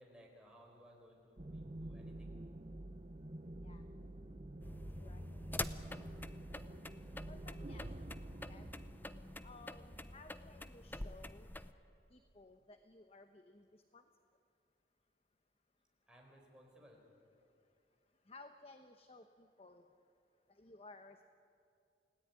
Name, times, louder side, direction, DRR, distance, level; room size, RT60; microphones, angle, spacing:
voice 1, 0.0-2.4 16.1-17.0, equal, 5° right, -1 dB, 4.7 m, -61 dB
sound 1, 1.4-10.7, right 1 dB, 35° right, 0.8 m, -49 dB
sound 2, 4.6-11.7, left 2 dB, 10° left, 0.7 m, -47 dB
voice 2, 5.0-5.6 6.0-6.1 6.7-6.8 7.3-7.9 8.5-8.7 9.4-11.5 12.1-14.0 18.3-19.8 20.5-21.3, left 2 dB, 35° left, 7 dB, 1.0 m, -58 dB
29.5 x 17.5 x 9.6 m, 2.6 s
head